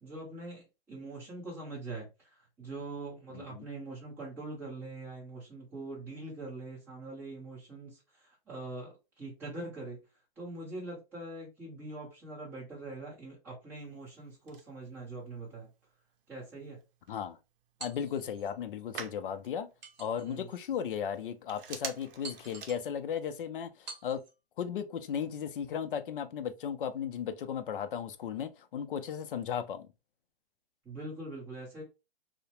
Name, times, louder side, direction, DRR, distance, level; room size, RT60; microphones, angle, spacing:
voice 1, 0.0-10.0 10.4-15.7 16.3-16.8 20.3-20.5 30.8-31.8, right 2 dB, 5° right, 0.8 m, -43 dB
voice 2, 3.3-3.7 17.1-17.4 17.8-19.7 20.0-24.2 24.6-29.9, left 8 dB, 60° left, 0.4 m, -36 dB
Telephone, 13.8-23.3, right 6 dB, 65° right, 0.6 m, -50 dB
sound 1, 17.8-18.5 19.8-20.6 21.2-21.3 22.2-22.9 23.9-24.4, right 3 dB, 45° right, 1.0 m, -48 dB
2.8 x 2.0 x 2.9 m
hypercardioid pair, 170°, 30 cm